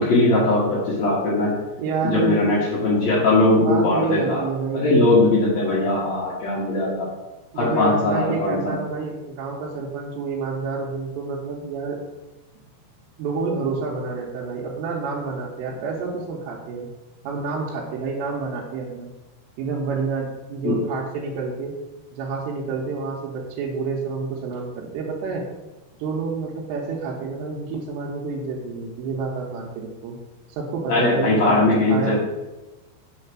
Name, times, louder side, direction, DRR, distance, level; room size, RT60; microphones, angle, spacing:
voice 1, 0.0-1.5 2.0-4.4 4.7-7.1 7.5-8.8 20.6-20.7 30.9-32.2, left 2 dB, 85° left, -6 dB, 1.5 m, -20 dB
voice 2, 1.8-2.4 3.5-4.9 7.5-12.0 13.2-16.9 17.2-19.1 19.6-21.7 22.1-25.4 26.0-30.2 30.5-32.2, right 4 dB, 85° right, -4 dB, 3.0 m, -29 dB
6.4 x 3.3 x 5.9 m, 1.1 s
omnidirectional pair, 4.9 m